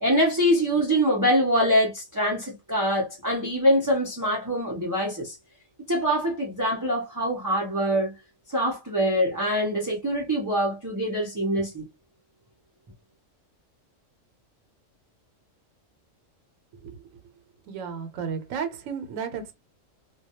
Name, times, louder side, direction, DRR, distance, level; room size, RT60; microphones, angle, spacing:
voice 1, 0.0-5.3 5.9-8.1 8.5-11.8, equal, 30° right, 0.3 m, -24 dB
voice 2, 17.7-19.5, right 6 dB, 85° right, 1.0 m, -33 dB
2.2 x 2.2 x 2.8 m
omnidirectional pair, 1.3 m